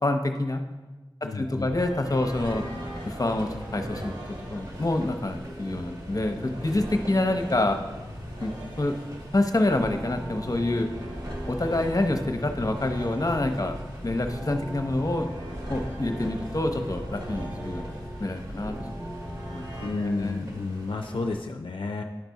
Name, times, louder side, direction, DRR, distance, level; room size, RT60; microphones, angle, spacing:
voice 1, 0.0-0.6 1.2-2.6 3.0-7.8 8.4-9.0 9.3-10.9 11.5-13.8 14.0-15.3 15.7-17.9 18.2-18.7 19.0-19.1 19.5-19.6 20.0-20.4, left 2 dB, 40° left, 6 dB, 0.8 m, -27 dB
voice 2, 1.2-1.7 19.8-22.0, left 3 dB, 70° left, 3 dB, 0.4 m, -31 dB
sound 1, 1.4-19.9, equal, 65° right, 2.4 m, -38 dB
sound 2, 2.5-21.4, equal, 45° right, 1.6 m, -45 dB
10.5 x 4.0 x 4.7 m, 1.2 s
wide cardioid pair, 45°, 9 cm